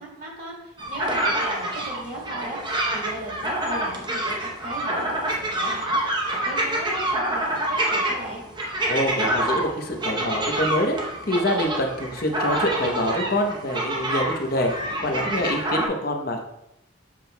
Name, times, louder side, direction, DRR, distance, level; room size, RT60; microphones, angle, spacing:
voice 1, 0.0-8.4, right 1 dB, 45° right, -4 dB, 2.3 m, -37 dB
sound 1, 0.8-15.9, right 1 dB, 20° right, 0.8 m, -27 dB
voice 2, 8.9-11.0 11.3-14.7 15.0-16.4, left 1 dB, 45° left, 3 dB, 0.8 m, -25 dB
7.5 x 6.0 x 2.2 m, 0.86 s
head